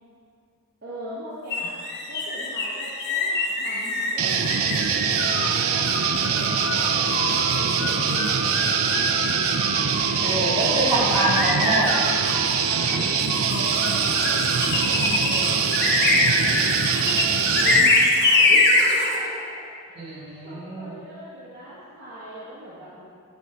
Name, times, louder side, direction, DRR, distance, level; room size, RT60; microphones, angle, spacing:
voice 1, 0.8-5.9 6.2-9.0 12.5-13.1 13.4-16.4 17.5-23.0, equal, 40° right, -9 dB, 1.1 m, -40 dB
sound 1, 1.5-19.2, left 2 dB, 50° left, 0.8 m, -24 dB
sound 2, 4.2-17.9, right 7 dB, 70° right, 0.4 m, -23 dB
voice 2, 10.2-11.9 20.0-21.0, right 1 dB, 25° right, -7 dB, 1.8 m, -25 dB
8.2 x 4.6 x 5.0 m, 2.4 s
head